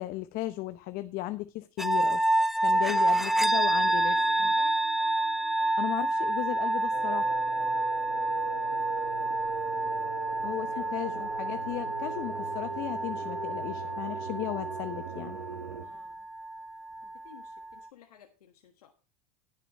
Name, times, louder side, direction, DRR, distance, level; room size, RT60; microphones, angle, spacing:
voice 1, 0.0-2.3 2.6-4.1 5.8-7.4 10.4-15.4, left 16 dB, 50° left, 0.7 m, -35 dB
sound 1, 1.8-17.8, right 1 dB, ahead, 0.5 m, -29 dB
voice 2, 2.7-4.8 9.0-9.4 10.4-10.9 15.8-16.3 17.0-18.9, left 10 dB, 85° left, 1.5 m, -54 dB
sound 2, 6.9-15.9, right 7 dB, 90° right, 1.2 m, -40 dB
19.5 x 6.8 x 3.1 m
hypercardioid pair, 100°, 19 cm